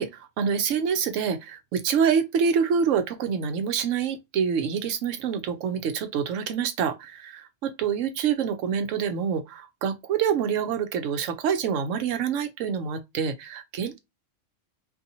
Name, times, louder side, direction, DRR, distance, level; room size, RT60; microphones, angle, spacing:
voice 1, 0.0-14.0, right 7 dB, 85° right, 1.0 m, -26 dB
2.8 x 2.6 x 2.6 m
omnidirectional pair, 1.3 m